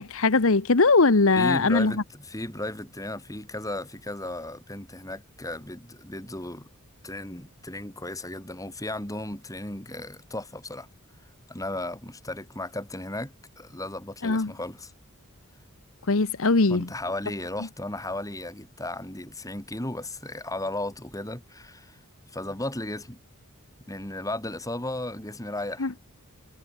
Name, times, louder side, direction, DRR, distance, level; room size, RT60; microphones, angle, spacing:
voice 1, 0.0-1.9 14.2-14.5 16.1-16.9 25.8-25.9, left 3 dB, 65° left, 1.1 m, -20 dB
voice 2, 1.3-6.7 7.0-10.9 11.5-14.9 16.7-22.0 22.3-23.2 23.9-25.9, left 1 dB, 15° left, 4.4 m, -35 dB
head